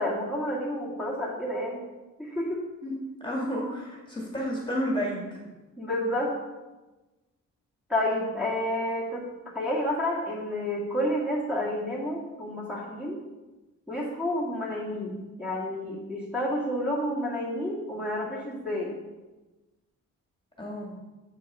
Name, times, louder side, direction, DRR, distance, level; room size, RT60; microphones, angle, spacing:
voice 1, 0.0-1.8 2.2-2.6 5.8-6.3 7.9-9.2 9.5-13.2 13.9-18.9, left 1 dB, 5° right, -6 dB, 1.9 m, -30 dB
voice 2, 2.8-5.5 20.6-21.0, equal, 15° left, -3 dB, 1.9 m, -31 dB
7.8 x 5.4 x 5.4 m, 1.1 s
wide cardioid pair, 120°, 31 cm